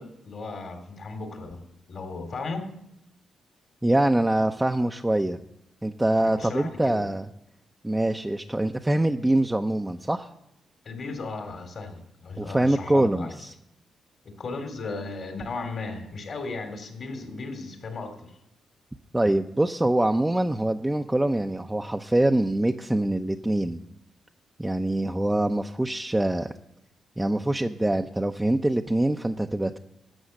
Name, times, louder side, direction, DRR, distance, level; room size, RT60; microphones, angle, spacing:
voice 1, 0.0-1.6 1.9-2.7 6.2-7.0 10.8-13.5 14.4-18.4, left 3 dB, 60° left, 6 dB, 2.7 m, -36 dB
voice 2, 3.8-5.4 5.8-7.3 7.8-10.3 12.4-13.5 19.1-23.8 24.6-26.5 27.2-29.8, right 1 dB, 15° right, 5 dB, 0.7 m, -24 dB
12.5 x 7.1 x 6.6 m, 0.80 s
supercardioid pair, 50°, 0 cm